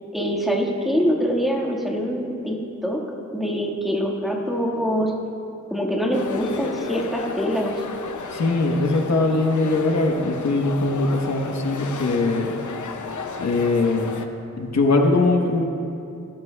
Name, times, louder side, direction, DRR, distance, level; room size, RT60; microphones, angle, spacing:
voice 1, 0.1-2.6 2.8-3.0 3.3-5.1 5.7-7.7, equal, ahead, -3 dB, 1.5 m, -24 dB
sound 1, 6.1-14.3, left 4 dB, 85° left, 0.7 m, -33 dB
voice 2, 8.3-12.5 13.4-14.2 14.6-15.6, left 2 dB, 65° left, 2 dB, 1.0 m, -21 dB
17.5 x 13.0 x 2.2 m, 2.7 s
wide cardioid pair, 85°, 29 cm